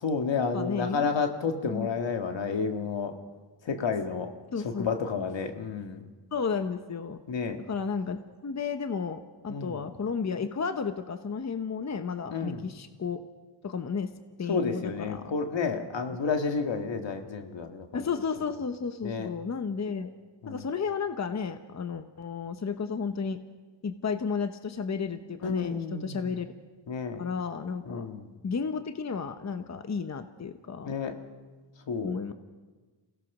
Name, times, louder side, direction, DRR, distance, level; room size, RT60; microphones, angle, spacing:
voice 1, 0.0-3.1 3.6-4.3 4.6-6.0 7.3-7.6 9.5-9.8 12.3-12.7 14.5-18.1 19.0-19.3 20.4-20.7 25.4-26.3 26.9-27.2 27.9-28.3 30.9-31.2 31.9-32.2, left 5 dB, 80° left, 5 dB, 1.8 m, -31 dB
voice 2, 0.5-1.1 1.7-1.9 4.5-4.9 6.3-7.2 7.7-13.2 13.6-14.1 14.4-15.3 17.9-20.1 20.5-23.4 23.8-26.5 27.2-28.1 28.4-30.9 32.0-32.3, left 5 dB, 40° left, 9 dB, 0.9 m, -33 dB
28.0 x 17.0 x 6.0 m, 1.4 s
wide cardioid pair, 100°, 43 cm